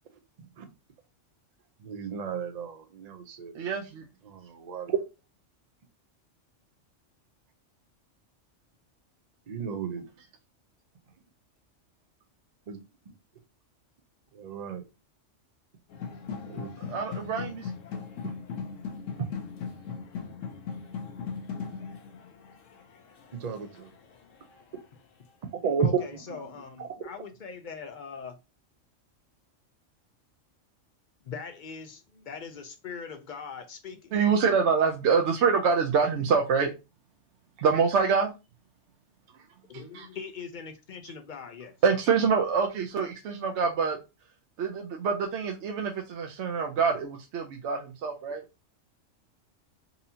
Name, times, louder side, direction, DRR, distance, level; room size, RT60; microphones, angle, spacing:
voice 1, 1.8-3.5 4.2-5.0 9.5-10.0 12.7-12.8 14.3-14.8 16.5-16.7 23.4-23.9 25.6-26.0 26.3-26.5 26.8-26.9, right 6 dB, 50° right, 0.5 m, -32 dB
voice 2, 3.5-4.0 16.9-17.7 34.1-36.7 37.6-38.3 39.9-40.1 41.8-44.0 44.6-48.4, right 5 dB, 70° right, 0.9 m, -25 dB
sound 1, 15.9-24.8, left 6 dB, 80° left, 1.1 m, -39 dB
voice 3, 25.8-28.4 31.2-34.1 39.7-41.8, left 5 dB, 55° left, 0.6 m, -41 dB
4.1 x 2.7 x 2.7 m
omnidirectional pair, 1.3 m